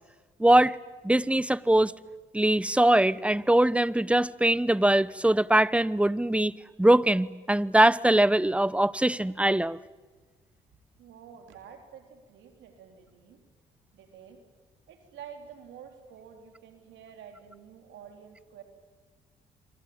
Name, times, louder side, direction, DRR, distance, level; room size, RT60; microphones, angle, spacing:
voice 1, 0.4-0.8 1.0-1.9 2.3-9.8, right 1 dB, 5° right, 1.0 m, -22 dB
voice 2, 11.0-13.4 13.9-14.4 14.9-18.6, right 8 dB, 80° right, 4.1 m, -49 dB
26.5 x 25.0 x 8.9 m
supercardioid pair, 50°, 19 cm